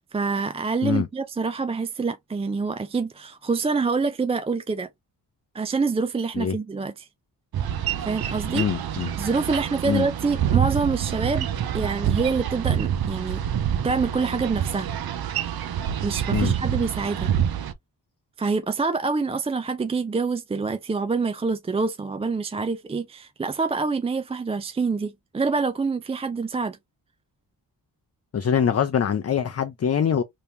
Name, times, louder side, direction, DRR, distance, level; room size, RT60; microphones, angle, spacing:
voice 1, 0.1-4.9 5.5-7.1 8.0-8.7 9.2-13.4 13.8-14.9 16.0-17.3 18.4-26.8, right 4 dB, 15° right, 0.3 m, -26 dB
Boat Water vehicle, 7.5-17.7, right 9 dB, 60° right, 0.6 m, -27 dB
voice 2, 8.5-9.1 9.8-10.1 16.3-16.5 28.3-30.2, left 8 dB, 35° left, 0.5 m, -23 dB
3.4 x 3.0 x 2.6 m
cardioid pair, 55°, 42 cm